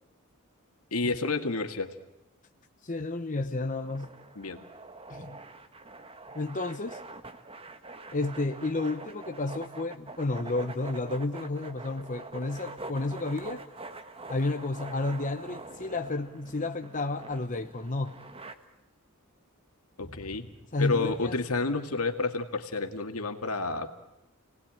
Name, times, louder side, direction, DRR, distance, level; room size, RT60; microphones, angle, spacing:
voice 1, 0.9-1.9 4.4-4.6 20.0-20.5 20.8-23.9, left 3 dB, 80° left, 6 dB, 2.1 m, -30 dB
voice 2, 2.8-4.2 5.1-5.4 6.3-7.0 8.1-13.6 14.3-18.2 20.7-21.3, left 2 dB, 35° left, 5 dB, 0.9 m, -31 dB
sound 1, 3.8-18.5, right 2 dB, 25° right, 1.4 m, -45 dB
29.0 x 19.0 x 8.9 m, 0.90 s
head